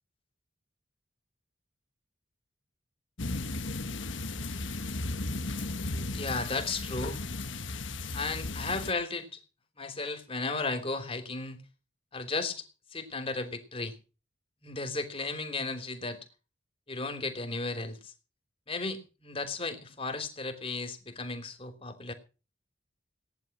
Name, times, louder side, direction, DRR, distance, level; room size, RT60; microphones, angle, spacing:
sound 1, 3.2-8.9, left 2 dB, 80° left, 1.4 m, -35 dB
voice 1, 5.9-7.3 8.1-9.4 9.8-11.6 12.1-12.7 12.9-13.9 14.6-16.2 16.9-18.1 18.7-22.1, left 3 dB, 30° left, 6 dB, 3.4 m, -35 dB
19.0 x 11.0 x 6.1 m, 0.35 s
head